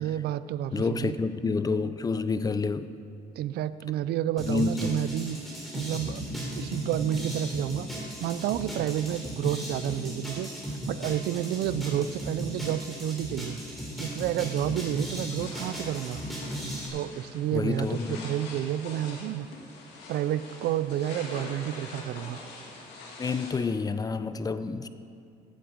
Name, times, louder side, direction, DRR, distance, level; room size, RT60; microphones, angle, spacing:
voice 1, 0.0-1.2 3.4-5.4 5.7-6.2 6.6-7.9 8.2-10.5 10.9-13.6 14.0-16.2 16.9-19.5 20.1-22.4, right 11 dB, 70° right, 15 dB, 0.5 m, -30 dB
voice 2, 0.7-2.9 4.5-5.0 17.5-18.2 23.2-24.9, left 4 dB, 20° left, 12 dB, 0.5 m, -28 dB
sound 1, 4.4-16.9, right 1 dB, ahead, 3.5 m, -36 dB
sound 2, 15.4-23.5, left 3 dB, 85° left, 2.4 m, -44 dB
15.5 x 9.0 x 5.1 m, 2.5 s
cardioid pair, 110°, 17 cm